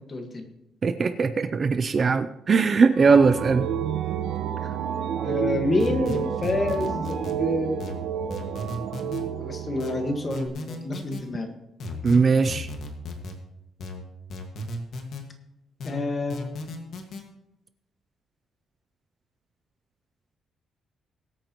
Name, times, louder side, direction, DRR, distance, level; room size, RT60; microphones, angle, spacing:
voice 1, 0.1-0.5 5.2-7.9 9.4-11.5 15.8-16.5, left 2 dB, 25° left, 5 dB, 1.5 m, -28 dB
voice 2, 0.8-3.7 12.0-12.7, right 5 dB, 30° right, 10 dB, 0.4 m, -20 dB
sound 1, 2.9-10.5, right 8 dB, 85° right, 1.0 m, -30 dB
sound 2, 5.8-7.4 7.8-9.2 9.8-11.2 11.8-13.4 13.8-15.2 15.8-17.2, left 2 dB, 55° left, 1.7 m, -35 dB
21.5 x 9.1 x 3.0 m, 0.88 s
cardioid pair, 175°, 0 cm